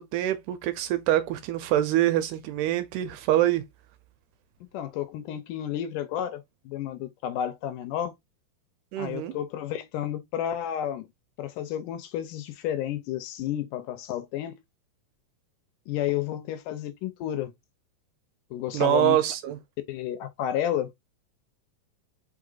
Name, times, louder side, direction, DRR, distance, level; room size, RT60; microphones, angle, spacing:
voice 1, 0.0-3.6 8.9-9.3 18.7-19.6, right 13 dB, 80° right, 2.0 m, -25 dB
voice 2, 4.6-8.1 9.0-11.1 11.4-14.6 15.9-17.5 18.5-19.2 19.9-20.9, left 11 dB, 80° left, 2.1 m, -31 dB
4.8 x 4.4 x 2.4 m
omnidirectional pair, 4.0 m